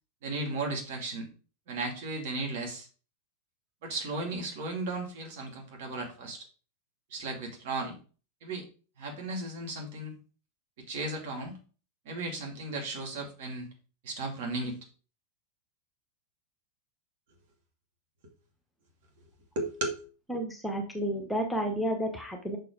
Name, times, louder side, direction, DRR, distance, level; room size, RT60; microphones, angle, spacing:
voice 1, 0.2-1.3 1.7-2.9 3.8-6.4 7.1-8.0 8.4-8.6 9.0-10.2 10.8-11.6 12.1-13.7 14.0-14.8 19.6-20.0, right 2 dB, 55° right, 2 dB, 2.5 m, -35 dB
voice 2, 20.3-22.6, equal, 5° left, 1 dB, 1.3 m, -31 dB
6.1 x 4.6 x 4.8 m, 0.37 s
figure-of-eight pair, 95°, 0 cm